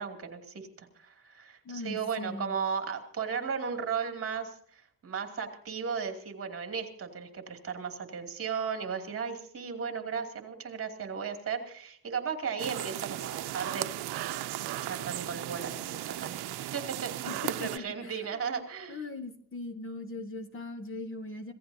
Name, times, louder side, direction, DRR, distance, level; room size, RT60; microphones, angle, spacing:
voice 1, 0.0-13.9 14.6-17.1 17.4-19.1, right 6 dB, 35° right, 4 dB, 2.7 m, -36 dB
voice 2, 1.6-2.5 17.2-21.5, left 3 dB, 35° left, 7 dB, 1.4 m, -40 dB
sound 1, 12.6-17.8, right 14 dB, 85° right, 0.7 m, -36 dB
26.0 x 16.5 x 2.8 m, 0.62 s
cardioid pair, 175°, 38 cm